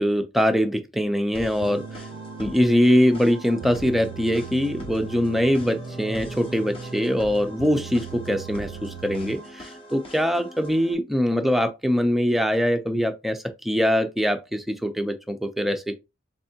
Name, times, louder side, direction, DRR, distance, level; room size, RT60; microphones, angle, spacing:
voice 1, 0.0-2.0 2.4-13.4 13.6-16.0, equal, ahead, 0.4 m, -23 dB
sound 1, 1.3-10.9, equal, 30° left, 0.8 m, -42 dB
sound 2, 1.6-9.7, right 6 dB, 70° right, 0.4 m, -39 dB
3.5 x 3.3 x 2.7 m
head